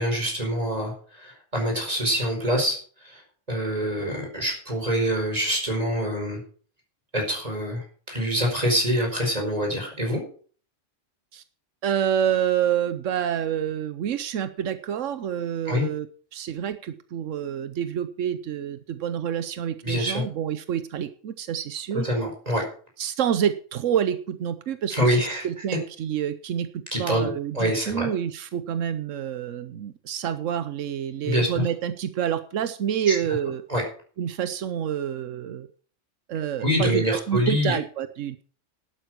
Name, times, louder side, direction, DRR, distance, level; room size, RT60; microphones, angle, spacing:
voice 1, 0.0-3.2 3.5-6.4 7.1-10.2 15.7-15.8 19.8-20.2 22.0-22.6 24.9-25.5 26.9-28.1 31.2-31.6 33.1-33.2 33.7-33.8 36.6-37.8, equal, 30° right, 1 dB, 4.9 m, -25 dB
voice 2, 11.8-16.1 16.3-22.0 23.0-33.6 34.2-35.7 36.3-38.4, right 9 dB, 90° right, 11 dB, 1.1 m, -28 dB
11.5 x 9.0 x 6.2 m, 0.44 s
omnidirectional pair, 1.3 m